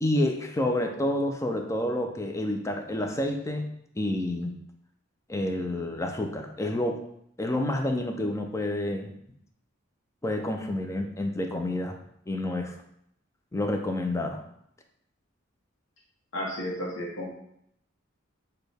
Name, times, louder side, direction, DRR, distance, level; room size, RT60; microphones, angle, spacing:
voice 1, 0.0-3.7 4.0-4.5 5.3-7.0 7.4-9.1 10.2-12.0 12.3-12.7 13.5-14.4, left 1 dB, 15° left, 3 dB, 0.4 m, -29 dB
voice 2, 16.3-17.3, left 1 dB, 75° left, -3 dB, 0.8 m, -33 dB
6.2 x 2.2 x 3.3 m, 0.73 s
head